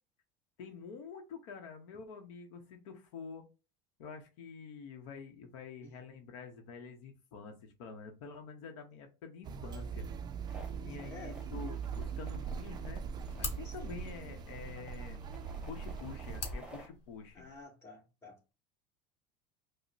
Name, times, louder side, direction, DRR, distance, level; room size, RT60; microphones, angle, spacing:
voice 1, 0.6-3.4 4.0-10.0 10.8-13.0 13.4-15.2 15.7-17.4, left 5 dB, 80° left, 0.8 m, -47 dB
sound 1, 9.4-16.4, right 6 dB, 25° right, 0.3 m, -41 dB
voice 2, 10.5-11.4 13.6-13.9 17.3-18.4, left 3 dB, 15° left, 1.8 m, -52 dB
sound 2, 10.5-16.9, right 2 dB, 5° right, 1.2 m, -54 dB
sound 3, 12.6-17.6, left 3 dB, 40° left, 1.2 m, -46 dB
5.1 x 2.0 x 2.5 m
supercardioid pair, 115°, 16 cm